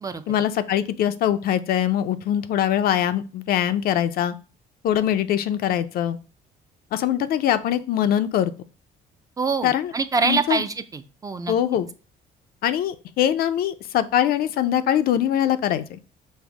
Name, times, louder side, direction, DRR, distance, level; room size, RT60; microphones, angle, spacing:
voice 1, 0.3-4.3 4.8-6.2 6.9-8.5 9.6-9.9 10.2-10.6 11.5-11.9 12.6-16.0, left 10 dB, 65° left, 11 dB, 0.4 m, -22 dB
voice 2, 9.4-11.5, right 4 dB, 20° right, 10 dB, 0.4 m, -25 dB
5.3 x 2.0 x 4.6 m, 0.34 s
cardioid pair, 110°, 17 cm